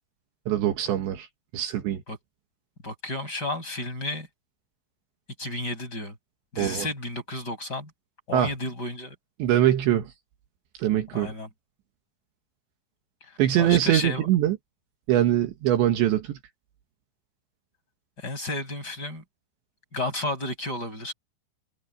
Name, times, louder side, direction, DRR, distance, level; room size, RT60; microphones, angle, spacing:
voice 1, 0.5-1.3 1.5-2.0 6.6-6.9 8.3-8.5 9.4-10.1 10.8-11.3 13.4-14.6 15.1-16.4, right 12 dB, 70° right, 3.5 m, -23 dB
voice 2, 2.8-4.3 5.4-6.1 6.5-7.9 8.3-9.1 11.1-11.5 13.2-14.3 18.2-19.2 19.9-21.1, left 2 dB, 20° left, 6.4 m, -32 dB
omnidirectional pair, 5.7 m